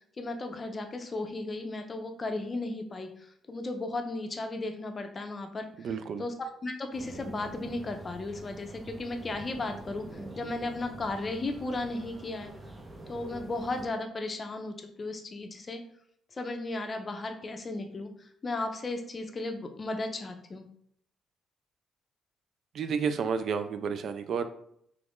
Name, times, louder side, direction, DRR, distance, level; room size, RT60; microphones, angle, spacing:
voice 1, 0.2-5.9 6.2-10.1 10.4-12.5 13.1-15.8 16.3-20.6, left 2 dB, 35° left, 5 dB, 0.5 m, -35 dB
voice 2, 5.8-6.2 22.7-24.5, right 6 dB, 65° right, 9 dB, 0.3 m, -31 dB
sound 1, 6.9-13.9, right 1 dB, 20° right, 0.6 m, -45 dB
3.0 x 2.4 x 3.5 m, 0.68 s
cardioid pair, 90°, 0 cm